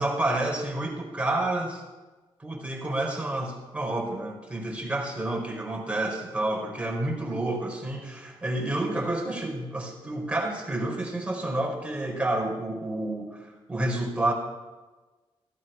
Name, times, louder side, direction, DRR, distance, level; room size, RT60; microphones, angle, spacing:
voice 1, 0.0-1.8 2.4-14.3, right 1 dB, 10° right, 0 dB, 4.4 m, -29 dB
15.0 x 12.5 x 5.7 m, 1.2 s
cardioid pair, 75°, 10 cm